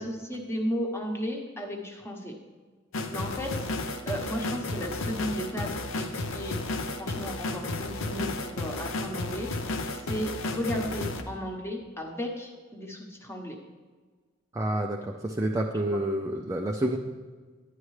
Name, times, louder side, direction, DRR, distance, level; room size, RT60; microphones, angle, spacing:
voice 1, 0.0-2.4 3.1-3.6 4.0-5.7 5.9-6.6 6.9-13.6 15.9-16.0, equal, 15° left, 1 dB, 1.1 m, -34 dB
sound 1, 2.9-11.2, left 2 dB, 70° left, 0.7 m, -33 dB
voice 2, 14.5-17.0, right 1 dB, 15° right, 1 dB, 0.4 m, -28 dB
11.0 x 9.2 x 3.2 m, 1.4 s
head